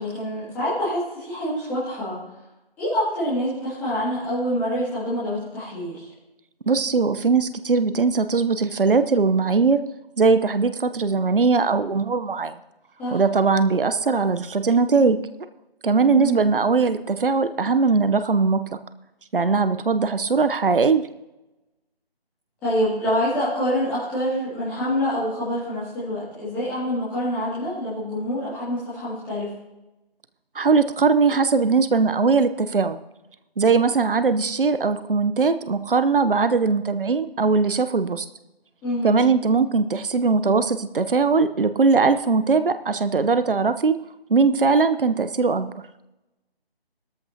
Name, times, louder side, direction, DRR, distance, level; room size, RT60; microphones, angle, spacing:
voice 1, 0.0-2.2 2.8-6.1 13.0-13.2 16.0-16.4 22.6-29.5 38.8-39.2, equal, 5° left, -11 dB, 2.1 m, -26 dB
voice 2, 6.7-9.8 10.2-12.5 13.1-15.2 15.8-18.6 19.3-21.1 30.5-33.0 33.6-38.3 39.0-44.0 44.3-45.7, right 4 dB, 60° right, 11 dB, 0.8 m, -20 dB
18.5 x 14.0 x 2.8 m, 0.98 s
figure-of-eight pair, 160°, 30 cm